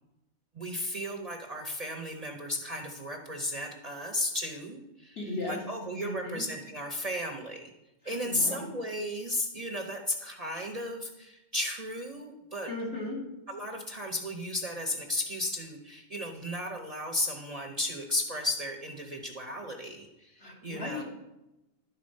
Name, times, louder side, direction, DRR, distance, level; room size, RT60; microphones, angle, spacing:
voice 1, 0.5-5.2 5.5-7.7 8.0-12.7 13.5-21.0, left 1 dB, 35° right, 2 dB, 0.8 m, -34 dB
voice 2, 5.2-5.6 6.0-6.5 8.0-8.7 12.7-13.2 20.4-21.0, left 2 dB, 55° left, -5 dB, 2.6 m, -36 dB
12.0 x 4.0 x 5.3 m, 0.95 s
omnidirectional pair, 1.2 m